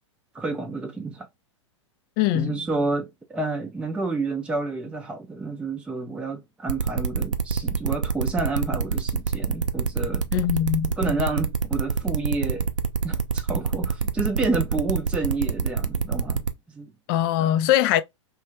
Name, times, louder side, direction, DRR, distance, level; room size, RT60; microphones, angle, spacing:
voice 1, 0.3-1.3 2.3-10.3 11.0-12.7 13.0-16.9 17.4-17.5, right 3 dB, 5° right, 0.5 m, -29 dB
voice 2, 2.2-2.6 10.3-10.9 17.1-18.0, left 12 dB, 45° left, 0.5 m, -21 dB
sound 1, 6.7-16.5, right 5 dB, 85° right, 0.5 m, -25 dB
3.1 x 2.3 x 3.2 m
hypercardioid pair, 105°, 16 cm